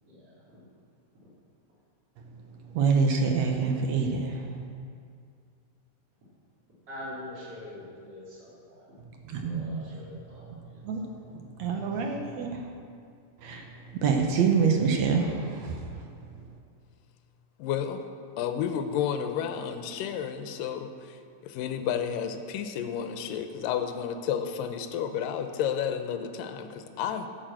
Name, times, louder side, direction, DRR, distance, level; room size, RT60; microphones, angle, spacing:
voice 1, 0.0-0.4 6.9-8.9 9.4-10.8, left 1 dB, 25° right, -8 dB, 3.7 m, -44 dB
voice 2, 2.2-4.7 9.0-12.7 13.4-16.6, right 5 dB, 65° right, 2 dB, 1.8 m, -28 dB
voice 3, 17.6-18.0 18.4-21.2 21.4-27.3, left 8 dB, 80° left, 7 dB, 2.3 m, -31 dB
11.5 x 6.5 x 7.7 m, 2.3 s
omnidirectional pair, 4.0 m